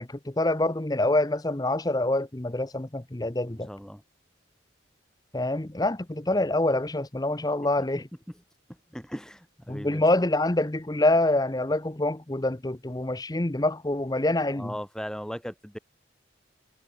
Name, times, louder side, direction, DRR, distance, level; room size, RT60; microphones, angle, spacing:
voice 1, 0.0-3.7 5.3-8.1 9.7-14.7, left 2 dB, 20° left, 0.7 m, -26 dB
voice 2, 3.7-4.0 6.3-6.4 8.9-10.0 14.5-15.8, equal, 5° left, 1.3 m, -37 dB
head